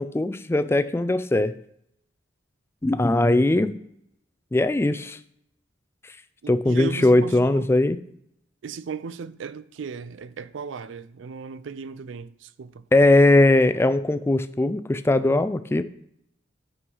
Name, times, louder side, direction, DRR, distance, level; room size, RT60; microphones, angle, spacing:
voice 1, 0.0-1.5 2.8-3.7 4.5-5.2 6.5-8.0 12.9-15.8, left 2 dB, 15° left, 0.3 m, -20 dB
voice 2, 6.4-7.8 8.6-12.8, right 5 dB, 80° right, 0.4 m, -36 dB
6.2 x 5.9 x 5.4 m
head